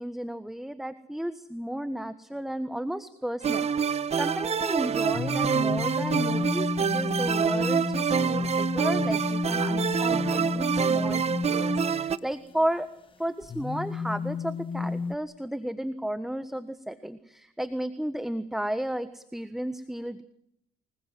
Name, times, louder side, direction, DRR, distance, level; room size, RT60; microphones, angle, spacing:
voice 1, 0.0-12.9 13.2-20.2, right 1 dB, ahead, 11 dB, 1.4 m, -33 dB
sound 1, 3.4-12.2, right 7 dB, 40° right, 1.3 m, -27 dB
sound 2, 5.1-12.5 13.4-15.1, left 4 dB, 30° left, 1.7 m, -31 dB
28.5 x 21.0 x 7.7 m, 0.74 s
cardioid pair, 110°, 17 cm